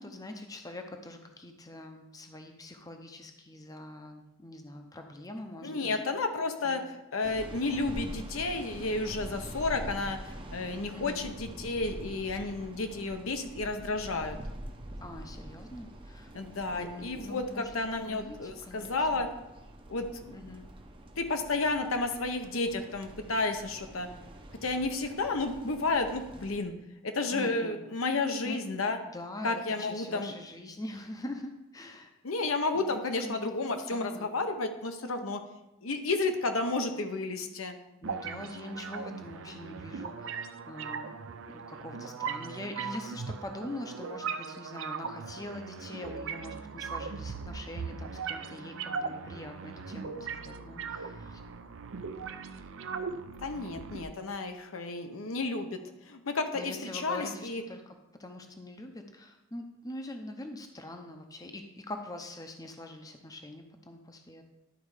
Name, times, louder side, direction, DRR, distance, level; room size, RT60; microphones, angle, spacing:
voice 1, 0.0-6.0 6.6-6.9 10.9-11.3 15.0-16.3 16.7-17.7 18.1-19.3 20.3-20.7 27.3-27.7 28.4-28.6 29.1-32.1 32.7-33.0 33.2-33.5 33.9-34.3 38.0-41.1 41.5-51.4 56.5-64.4, left 1 dB, 15° left, 5 dB, 0.7 m, -43 dB
voice 2, 5.6-6.8 7.1-10.2 10.5-14.4 16.3-19.3 19.9-20.4 21.2-24.1 24.6-26.7 27.0-29.0 29.4-30.3 32.2-35.4 35.8-37.8 53.4-55.8 56.1-57.6, left 3 dB, 75° left, 6 dB, 0.9 m, -31 dB
sound 1, 7.2-26.6, right 1 dB, 25° right, 0.7 m, -45 dB
sound 2, 38.0-54.0, right 5 dB, 65° right, 0.5 m, -39 dB
11.5 x 4.2 x 4.9 m, 0.93 s
head